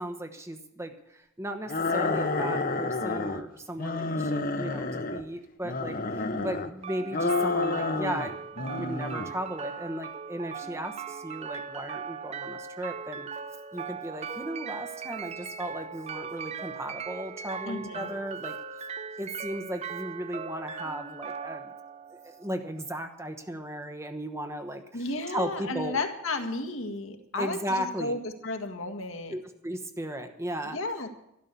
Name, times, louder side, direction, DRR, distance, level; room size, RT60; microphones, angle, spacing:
voice 1, 0.0-13.3 13.7-18.5 19.2-21.7 22.1-26.0 27.4-28.1 29.3-30.8, right 1 dB, 10° right, 6 dB, 1.0 m, -36 dB
sound 1, 1.7-3.4 3.8-5.2 5.6-6.7 7.1-8.3 8.6-9.3, left 3 dB, 40° left, 0.9 m, -29 dB
voice 2, 6.2-6.5 17.7-18.1 24.9-28.2 28.4-29.3 30.7-31.1, left 2 dB, 65° left, 5 dB, 1.8 m, -33 dB
sound 2, 6.8-22.8, right 6 dB, 30° right, 0.5 m, -39 dB
13.0 x 12.0 x 6.9 m, 0.82 s
head